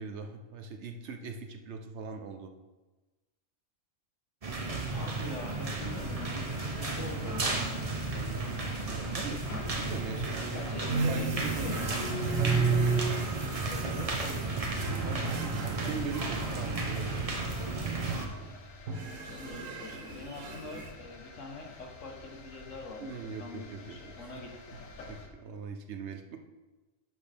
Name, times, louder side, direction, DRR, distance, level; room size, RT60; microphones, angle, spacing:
voice 1, 0.0-2.5 8.1-8.4 8.8-9.5 9.8-11.7 12.3-12.7 15.0-17.5 23.0-24.3 25.0-26.5, right 5 dB, 65° right, 6 dB, 1.0 m, -41 dB
sound 1, 4.4-18.3, right 3 dB, 30° right, 0.8 m, -34 dB
voice 2, 4.8-8.1 10.5-12.1 13.6-14.7 19.2-23.1 23.4-24.5, left 2 dB, 70° left, 1 dB, 1.6 m, -44 dB
sound 2, 5.8-25.3, left 4 dB, 85° left, 1.4 m, -48 dB
sound 3, 10.9-17.3 17.8-18.4 18.9-20.9, right 4 dB, 80° right, 1.3 m, -33 dB
10.5 x 6.3 x 3.5 m, 1.2 s
omnidirectional pair, 1.3 m